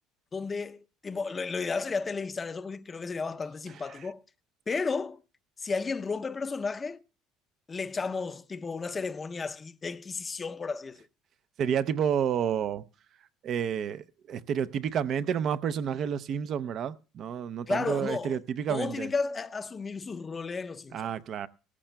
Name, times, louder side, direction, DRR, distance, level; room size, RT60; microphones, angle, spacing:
voice 1, 0.3-4.2 4.7-5.2 5.6-7.0 7.7-11.1 17.7-18.4 18.7-21.1, left 4 dB, 25° left, 0.6 m, -33 dB
voice 2, 3.7-4.1 11.6-12.8 13.4-19.1 20.9-21.5, right 8 dB, 50° right, 0.5 m, -30 dB
18.0 x 14.5 x 2.2 m
supercardioid pair, 100°, 0 cm